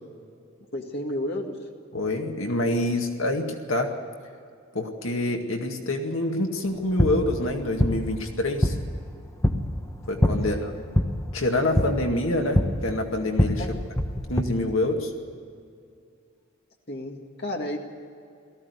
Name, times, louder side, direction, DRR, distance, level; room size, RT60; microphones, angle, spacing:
voice 1, 0.7-1.6 10.4-10.9 13.6-13.8 16.9-17.8, left 1 dB, 50° left, 1 dB, 2.0 m, -32 dB
voice 2, 1.9-3.9 4.7-8.8 10.1-10.7 11.3-13.8 14.3-15.1, left 1 dB, 75° left, 3 dB, 2.0 m, -26 dB
sound 1, 6.7-14.4, left 1 dB, 15° left, 1.1 m, -26 dB
18.5 x 14.5 x 9.5 m, 2.3 s
head